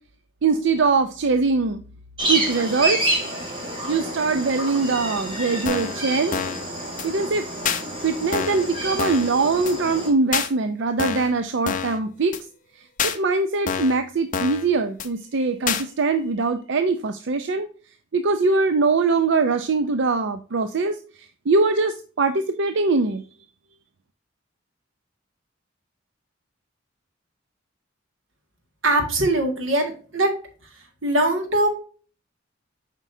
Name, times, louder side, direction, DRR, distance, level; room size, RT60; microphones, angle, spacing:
voice 1, 0.4-1.8 2.3-3.1 3.9-6.4 7.0-7.4 8.0-12.3 13.0-17.7 18.1-21.0 21.5-23.2, right 4 dB, 65° right, 8 dB, 0.5 m, -22 dB
sound 1, 2.2-10.1, right 1 dB, 25° right, 2.4 m, -29 dB
sound 2, 5.7-6.0 6.3-6.6 7.0-7.1 7.7-7.8 8.3-8.7 9.0-9.3 9.7-9.8 10.3-10.5 11.0-11.3 11.7-12.0 12.3-12.4 13.0-13.2 13.7-14.0 14.3-14.7 15.0-15.1 15.7-15.8, left 7 dB, 40° left, 0.7 m, -26 dB
voice 2, 28.8-30.3 31.0-31.7, right 1 dB, 90° right, 4 dB, 1.9 m, -21 dB
7.4 x 5.2 x 2.7 m, 0.39 s
head